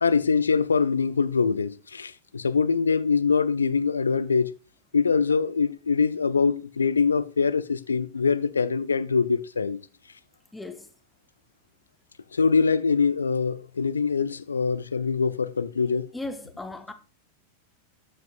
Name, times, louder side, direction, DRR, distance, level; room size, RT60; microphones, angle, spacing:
voice 1, 0.0-4.5 4.9-9.8 12.3-16.1, left 5 dB, 75° left, 0.4 m, -23 dB
voice 2, 10.5-10.9 16.1-16.9, left 2 dB, 5° left, 0.9 m, -36 dB
12.5 x 6.0 x 2.4 m
figure-of-eight pair, 90°, 0 cm